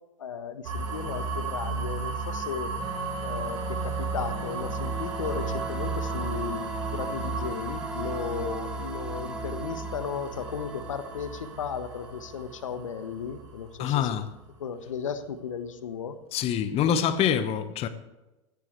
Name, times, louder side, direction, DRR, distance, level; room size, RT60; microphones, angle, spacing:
voice 1, 0.2-2.7 3.2-14.1 14.6-16.2, left 6 dB, 75° left, 1.3 m, -35 dB
sound 1, 0.6-14.4, right 3 dB, 75° right, 3.9 m, -34 dB
Wind instrument woodwind instrument, 2.8-7.4, right 5 dB, 35° right, 2.6 m, -40 dB
sound 2, 4.1-12.7, right 2 dB, 5° right, 3.1 m, -40 dB
voice 2, 13.8-14.3 16.3-17.9, left 9 dB, 35° left, 1.2 m, -25 dB
17.0 x 15.0 x 3.3 m
figure-of-eight pair, 90°, 17 cm